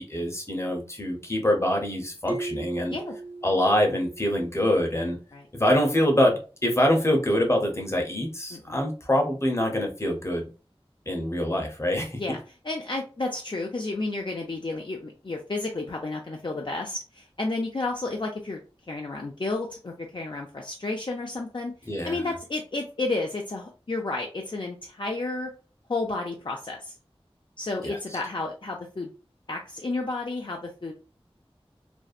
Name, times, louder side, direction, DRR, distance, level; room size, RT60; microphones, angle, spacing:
voice 1, 0.0-2.9 3.4-5.2 5.5-10.5 11.1-12.4 21.9-22.3 27.8-28.0, left 1 dB, 25° left, 2 dB, 0.7 m, -25 dB
sound 1, 2.3-4.8, right 2 dB, 20° right, 0.4 m, -38 dB
voice 2, 12.6-18.6 18.9-21.7 22.0-25.5 25.9-26.9 27.6-29.1 29.5-30.9, left 2 dB, 50° left, 0 dB, 0.4 m, -31 dB
2.6 x 2.1 x 2.4 m, 0.35 s
wide cardioid pair, 45°, 10 cm